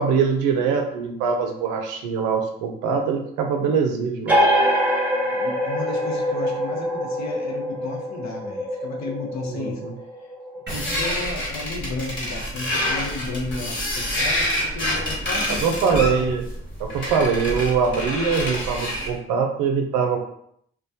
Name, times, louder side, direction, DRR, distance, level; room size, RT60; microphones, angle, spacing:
voice 1, 0.0-4.4 9.5-10.0 15.5-16.4 16.8-20.2, right 6 dB, 85° right, 3 dB, 0.5 m, -23 dB
sound 1, 4.3-11.5, equal, 5° right, 0.8 m, -25 dB
voice 2, 5.2-9.8 10.2-10.3 10.7-16.3, left 3 dB, 60° left, 1 dB, 0.7 m, -33 dB
sound 2, 10.7-19.2, equal, 40° left, 1.2 m, -27 dB
sound 3, 10.7-14.6, right 3 dB, 35° right, 0.8 m, -41 dB
2.2 x 2.1 x 2.6 m, 0.69 s
hypercardioid pair, 45°, 30 cm